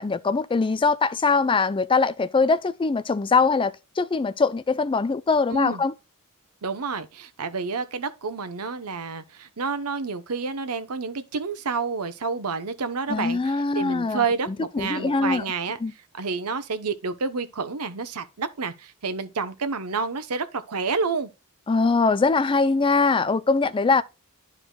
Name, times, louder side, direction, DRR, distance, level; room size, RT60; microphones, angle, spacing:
voice 1, 0.0-5.9 13.1-15.4 15.8-15.9 21.7-24.0, left 4 dB, 25° left, 0.4 m, -22 dB
voice 2, 5.5-5.8 6.6-15.8 16.1-21.3, right 4 dB, 85° right, 0.9 m, -29 dB
12.0 x 4.8 x 2.3 m
head